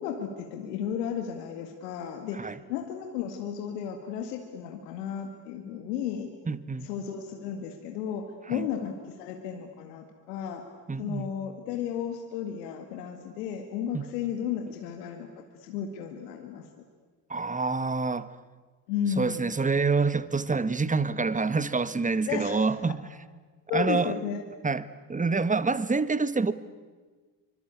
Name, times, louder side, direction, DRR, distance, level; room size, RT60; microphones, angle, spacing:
voice 1, 0.0-6.3 6.8-10.6 11.0-16.7 18.9-19.5 22.3-22.6 23.7-24.4, left 8 dB, 80° left, 2.0 m, -34 dB
voice 2, 6.5-6.9 8.5-8.7 10.9-11.3 13.9-14.1 17.3-18.3 19.2-23.0 23.7-24.2 24.6-26.5, right 4 dB, 15° right, 1.4 m, -27 dB
26.0 x 25.0 x 8.4 m
hypercardioid pair, 50°, 48 cm